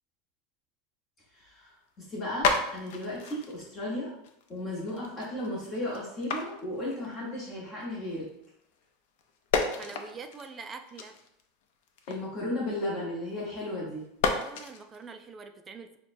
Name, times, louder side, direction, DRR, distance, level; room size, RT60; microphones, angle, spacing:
voice 1, 1.3-1.7 2.0-4.1 4.5-8.3 12.1-14.0, left 1 dB, 30° left, -5 dB, 1.1 m, -35 dB
sound 1, 1.9-2.0 2.2-7.5 7.8-8.9 9.2-13.6 14.0-15.1, left 4 dB, 70° left, 0.5 m, -33 dB
voice 2, 9.8-11.2 14.3-16.0, right 5 dB, 20° right, 7 dB, 0.4 m, -44 dB
6.1 x 2.2 x 2.6 m, 0.79 s
supercardioid pair, 140°, 0 cm